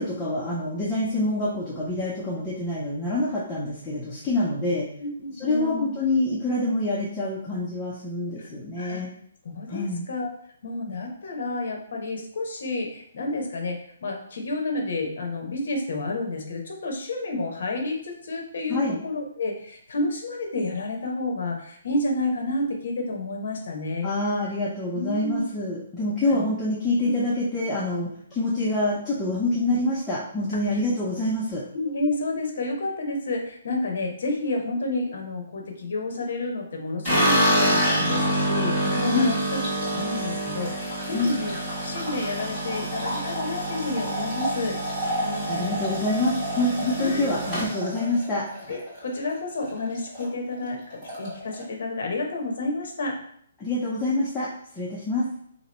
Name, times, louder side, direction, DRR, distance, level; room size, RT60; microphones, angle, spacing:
voice 1, 0.0-4.9 5.4-9.1 9.7-10.0 18.7-19.0 24.0-31.6 39.1-39.3 41.1-41.3 45.5-48.5 53.6-55.3, left 2 dB, 5° left, -7 dB, 0.4 m, -26 dB
voice 2, 5.0-5.9 8.4-8.5 8.8-9.0 9.4-10.3 10.6-24.1 24.9-25.4 26.2-26.4 30.7-30.8 31.7-44.8 45.2-45.8 47.0-47.3 48.7-53.2, left 2 dB, 50° left, 2 dB, 0.8 m, -30 dB
sound 1, 37.0-49.3 49.6-50.3 50.5-50.6 50.9-51.6, equal, 15° right, 1.6 m, -27 dB
2.9 x 2.9 x 4.1 m, 0.66 s
hypercardioid pair, 175°, 0 cm